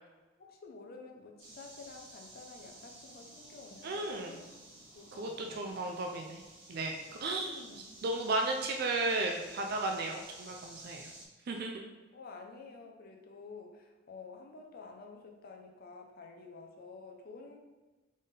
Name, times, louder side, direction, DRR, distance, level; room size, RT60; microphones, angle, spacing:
voice 1, 0.4-4.4 4.9-5.7 7.4-8.0 12.1-17.6, left 4 dB, 50° left, 2 dB, 0.6 m, -50 dB
sound 1, 1.4-11.2, right 1 dB, 85° right, 1.4 m, -54 dB
voice 2, 3.8-4.4 5.2-6.4 6.7-11.1 11.5-11.9, right 2 dB, 50° right, 2 dB, 0.4 m, -34 dB
3.7 x 3.7 x 3.9 m, 1.2 s
head